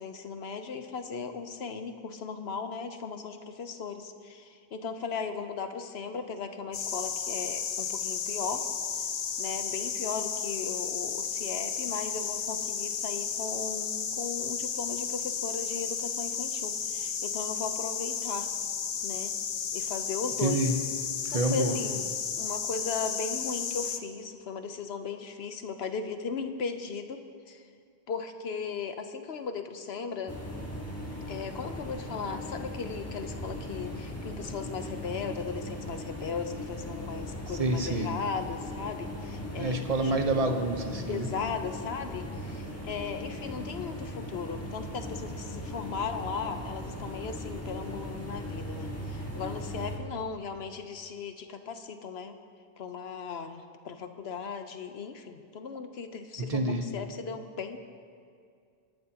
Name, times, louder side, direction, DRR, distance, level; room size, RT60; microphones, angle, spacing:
voice 1, 0.0-8.7 9.4-18.5 19.0-19.3 19.7-20.7 21.3-22.1 22.4-27.2 27.5-27.7 28.1-30.4 31.3-40.2 40.5-40.6 41.1-52.4 52.8-57.8, left 5 dB, 85° left, 8 dB, 1.1 m, -37 dB
sound 1, 6.7-24.0, left 7 dB, 65° left, 0.9 m, -33 dB
voice 2, 20.4-20.8 21.2-21.8 37.5-38.1 39.6-41.3 56.4-56.9, right 2 dB, 40° right, 5 dB, 1.1 m, -28 dB
sound 2, 30.3-50.0, left 1 dB, 15° left, 1.6 m, -38 dB
24.5 x 11.5 x 2.9 m, 2.2 s
omnidirectional pair, 1.0 m